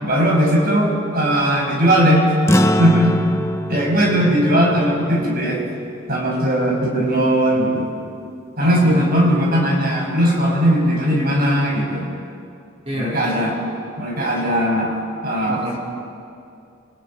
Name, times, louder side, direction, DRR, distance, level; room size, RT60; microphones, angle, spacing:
voice 1, 0.0-2.3 2.8-3.2 3.7-5.6 6.1-7.9 8.6-12.1 12.9-13.5 14.0-14.9 15.2-15.6, equal, 45° right, -2 dB, 5.9 m, -18 dB
sound 1, 2.5-7.1, left 1 dB, 15° left, 0.7 m, -24 dB
voice 2, 8.6-9.1 12.9-13.4 15.5-15.8, right 1 dB, 30° right, -2 dB, 3.2 m, -29 dB
29.5 x 19.0 x 5.5 m, 2.5 s
head